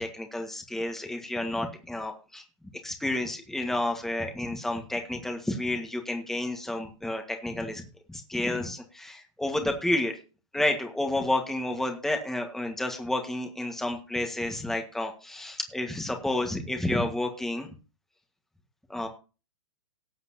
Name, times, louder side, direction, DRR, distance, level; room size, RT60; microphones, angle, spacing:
voice 1, 0.0-2.4 2.8-7.8 8.1-10.2 10.5-17.7 18.9-19.1, left 1 dB, ahead, 3 dB, 1.7 m, -30 dB
18.5 x 7.9 x 2.9 m, 0.33 s
hypercardioid pair, 120°, 15 cm